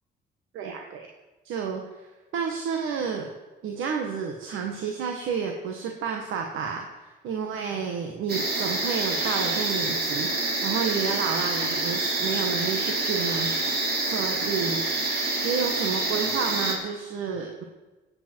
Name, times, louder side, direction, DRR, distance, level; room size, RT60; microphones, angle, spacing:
voice 1, 0.5-1.1 1.4-3.3 3.6-10.3 10.6-13.5 14.0-14.8 15.4-17.6, right 6 dB, 85° right, 2 dB, 1.4 m, -30 dB
sound 1, 8.3-16.8, right 2 dB, 50° right, 3.0 m, -27 dB
18.0 x 8.6 x 4.6 m, 1.2 s
cardioid pair, 90°, 20 cm